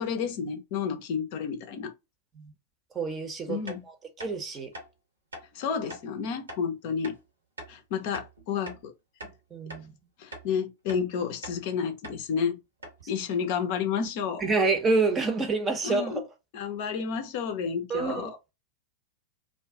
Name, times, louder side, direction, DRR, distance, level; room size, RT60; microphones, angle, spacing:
voice 1, 0.0-1.9 3.5-3.8 5.5-7.2 7.7-8.9 9.2-9.3 10.2-12.6 13.1-14.4 15.8-16.2 16.5-18.5, left 6 dB, 50° left, 0.5 m, -31 dB
voice 2, 2.9-3.6 4.2-4.7 9.5-9.9 14.4-16.1 17.9-18.2, right 3 dB, 20° right, 0.7 m, -27 dB
sound 1, 3.7-3.8 4.2-4.3 4.7-4.9 5.3-5.5 5.9-6.1 6.5-6.6 7.0-7.2 7.6-7.7 8.1-8.9 9.2-9.4 9.7-9.9 10.3-10.5 10.9-11.0 11.4-11.6 12.0-12.2 12.5-12.6 12.8-13.0, right 1 dB, 75° right, 1.0 m, -42 dB
2.5 x 2.3 x 3.5 m
figure-of-eight pair, 90°, 0 cm